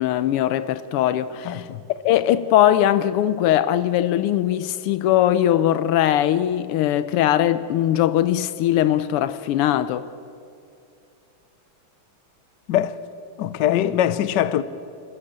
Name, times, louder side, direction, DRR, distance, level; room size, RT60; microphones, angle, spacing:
voice 1, 0.0-10.1, left 12 dB, 90° left, 1.6 m, -20 dB
voice 2, 1.4-1.8 12.7-13.0 13.4-14.6, left 11 dB, 65° left, 1.2 m, -22 dB
28.5 x 14.0 x 8.7 m
omnidirectional pair, 2.4 m